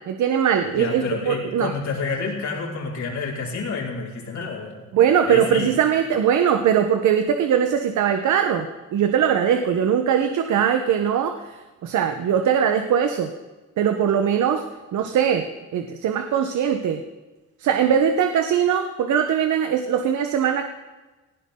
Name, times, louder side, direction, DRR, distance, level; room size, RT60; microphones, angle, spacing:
voice 1, 0.1-1.7 4.9-13.3 13.8-14.7 14.9-17.0 17.6-20.7, right 8 dB, 75° right, 6 dB, 1.2 m, -21 dB
voice 2, 0.8-4.8 5.2-5.7, left 4 dB, 65° left, -3 dB, 5.2 m, -29 dB
19.5 x 16.0 x 3.9 m, 1.2 s
cardioid pair, 90°, 30 cm